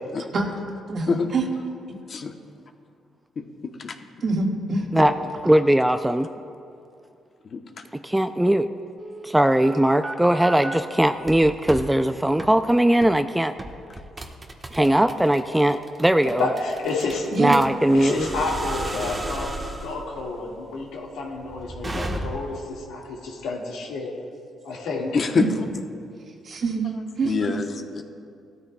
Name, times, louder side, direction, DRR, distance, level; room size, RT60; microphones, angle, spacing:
voice 1, 0.9-1.4 4.2-4.8 17.3-17.6 25.4-25.5 26.5-26.9 27.2-27.3, right 3 dB, 55° right, 0 dB, 1.7 m, -24 dB
voice 2, 3.4-4.0 7.5-7.8 25.1-25.5 27.2-27.7 27.9-28.0, left 5 dB, 50° left, 6 dB, 0.9 m, -25 dB
voice 3, 5.5-6.3 8.0-8.7 9.2-13.5 14.7-16.5 17.4-18.3, right 1 dB, 5° right, 9 dB, 0.3 m, -19 dB
sound 1, 9.0-10.8 11.2-11.9 12.4-12.6 13.0-13.2 13.6-22.6, right 1 dB, 25° right, 1.1 m, -34 dB
voice 4, 16.3-17.3 17.9-24.1 24.6-25.2, left 3 dB, 85° left, -1 dB, 1.8 m, -30 dB
17.0 x 13.0 x 2.3 m, 2.5 s
cardioid pair, 90°, 0 cm